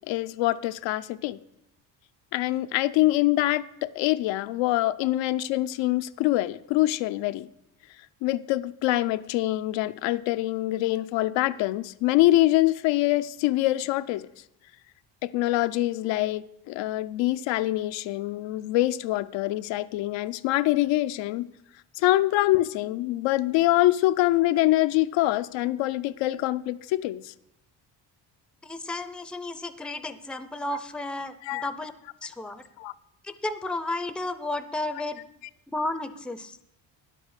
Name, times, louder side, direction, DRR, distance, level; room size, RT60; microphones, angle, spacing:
voice 1, 0.1-1.4 2.3-7.5 8.2-14.3 15.2-21.5 22.0-27.3 31.5-31.7 32.8-32.9, left 16 dB, 85° left, 0.6 m, -25 dB
voice 2, 28.6-31.9 32.2-32.6 33.2-35.2 35.7-36.6, left 2 dB, ahead, 0.5 m, -33 dB
10.0 x 7.7 x 6.4 m
cardioid pair, 110°, 43 cm